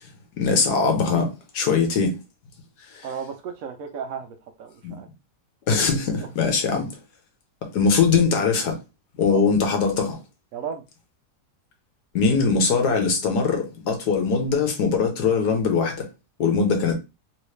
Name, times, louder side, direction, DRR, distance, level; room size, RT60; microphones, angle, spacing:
voice 1, 0.4-1.3 1.5-2.2 2.9-3.0 4.8-5.0 5.7-6.9 7.7-8.8 9.2-10.2 12.1-16.1 16.4-16.9, left 5 dB, 75° left, 1.4 m, -21 dB
voice 2, 3.0-5.1 6.2-6.3 9.2-9.5 10.5-10.8, right 7 dB, 70° right, 0.9 m, -34 dB
3.1 x 3.1 x 3.2 m
omnidirectional pair, 1.7 m